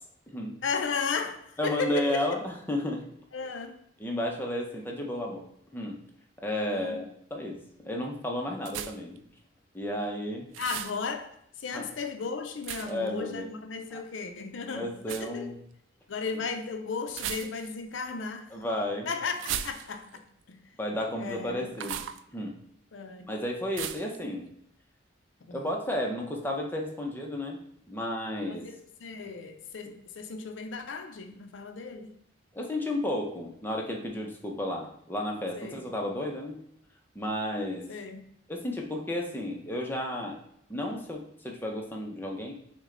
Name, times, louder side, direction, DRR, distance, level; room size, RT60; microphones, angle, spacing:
voice 1, 0.6-2.4 3.3-3.8 6.7-7.0 10.6-11.3 11.6-15.5 16.1-18.5 19.1-20.1 20.5-20.6 21.2-21.7 22.9-23.3 25.5-25.7 28.5-32.1 35.6-35.9 37.9-38.3, left 5 dB, 80° left, 7 dB, 0.5 m, -35 dB
voice 2, 1.6-3.0 4.0-5.4 5.7-6.0 6.4-9.2 9.7-10.5 11.7-11.9 12.8-13.5 13.9-14.0 14.7-15.6 18.5-19.1 20.8-22.0 22.3-22.6 23.3-24.5 25.5-27.6 27.9-28.7 32.5-36.6 37.1-37.9 38.5-40.4 40.7-42.5, left 1 dB, 10° left, 0 dB, 0.7 m, -32 dB
sound 1, 8.6-9.2 10.5-11.0 12.6-13.1 15.0-15.3 17.1-17.8 19.3-20.2 21.7-22.2 23.7-24.2, right 10 dB, 85° right, 0.3 m, -36 dB
6.1 x 2.2 x 3.8 m, 0.72 s
head